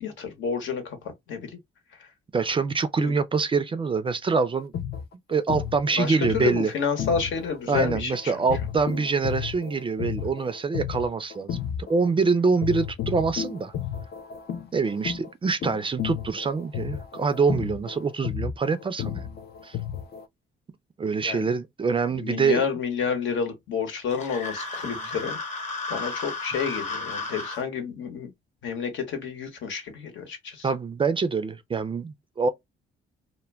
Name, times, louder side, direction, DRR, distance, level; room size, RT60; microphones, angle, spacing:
voice 1, 0.0-1.6 2.0-2.1 3.0-3.1 5.9-8.5 21.2-21.5 22.1-25.4 25.9-28.3 28.6-30.7, left 6 dB, 70° left, 1.0 m, -30 dB
voice 2, 2.3-4.7 5.3-6.7 7.7-11.6 11.9-13.7 14.7-19.3 19.6-19.8 21.0-22.6 24.8-25.0 30.6-32.5, right 4 dB, 25° right, 0.4 m, -25 dB
sound 1, 4.6-12.3 12.6-20.3, left 9 dB, 55° left, 0.4 m, -33 dB
sound 2, 24.1-27.6, left 3 dB, 35° left, 0.9 m, -33 dB
2.1 x 2.1 x 3.3 m
cardioid pair, 90°, 20 cm